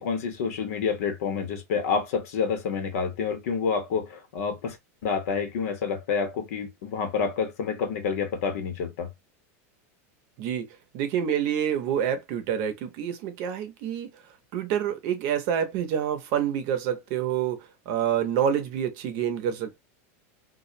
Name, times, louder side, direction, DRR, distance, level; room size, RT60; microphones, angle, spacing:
voice 1, 0.0-4.8 5.0-9.1, left 5 dB, 75° left, 0.8 m, -28 dB
voice 2, 10.9-14.1 14.5-19.8, right 9 dB, 50° right, 0.7 m, -27 dB
2.3 x 2.1 x 2.6 m
supercardioid pair, 140°, 8 cm